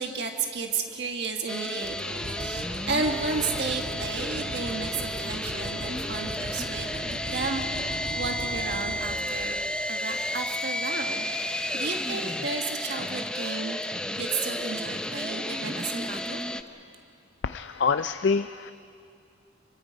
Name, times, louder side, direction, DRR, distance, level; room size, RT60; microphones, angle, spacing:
voice 1, 0.0-9.6 9.9-16.4, right 4 dB, 60° right, 3 dB, 1.6 m, -33 dB
sound 1, 1.5-16.6, left 1 dB, 5° left, 0.5 m, -32 dB
sound 2, 1.8-9.8, equal, 80° right, 2.3 m, -38 dB
sound 3, 7.2-12.4, equal, 30° right, 7.9 m, -49 dB
voice 2, 17.4-18.7, left 5 dB, 65° left, 11 dB, 0.4 m, -26 dB
29.0 x 23.5 x 5.2 m, 2.5 s
head